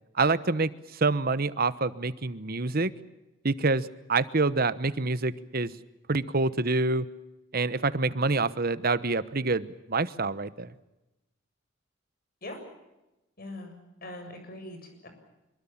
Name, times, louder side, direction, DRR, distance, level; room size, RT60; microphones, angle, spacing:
voice 1, 0.2-0.7 1.0-2.9 3.4-5.7 6.1-7.1 7.5-10.7, right 3 dB, 50° right, 15 dB, 1.1 m, -26 dB
voice 2, 13.4-13.7 14.0-15.1, left 1 dB, 50° left, 6 dB, 7.3 m, -41 dB
25.5 x 23.0 x 7.4 m, 0.99 s
head